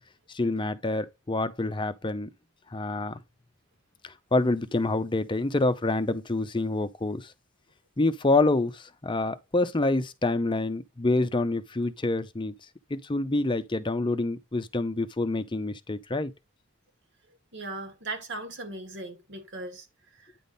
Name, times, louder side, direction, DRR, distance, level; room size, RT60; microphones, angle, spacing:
voice 1, 0.3-2.3 2.7-3.2 4.0-7.3 8.0-12.5 12.9-16.3, left 2 dB, 25° left, 0.6 m, -27 dB
voice 2, 17.5-19.9 20.2-20.3, right 2 dB, 60° right, 1.9 m, -38 dB
9.2 x 3.6 x 4.0 m
head